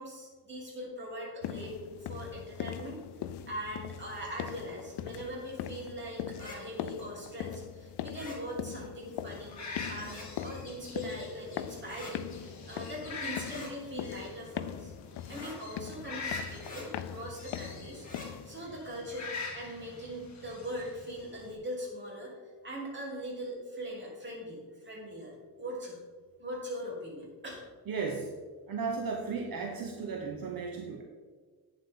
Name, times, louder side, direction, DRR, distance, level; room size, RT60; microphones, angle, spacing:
voice 1, 0.0-1.7 2.0-3.0 3.5-9.6 9.9-14.9 15.3-18.1 18.4-26.0 26.4-27.6, equal, 30° right, -4 dB, 3.5 m, -41 dB
sound 1, 1.4-18.7, left 10 dB, 90° left, 0.6 m, -41 dB
sound 2, 6.3-6.6 8.1-8.4 10.0-10.3 11.9-12.1 13.4-13.7 15.3-15.6 16.6-16.9 18.0-18.3, left 3 dB, 20° left, 2.7 m, -45 dB
sound 3, 9.3-21.5, left 4 dB, 45° left, 2.3 m, -44 dB
voice 2, 27.9-28.3 28.7-31.0, right 5 dB, 60° right, 2 dB, 1.1 m, -35 dB
11.5 x 8.8 x 3.8 m, 1.5 s
wide cardioid pair, 155°, 39 cm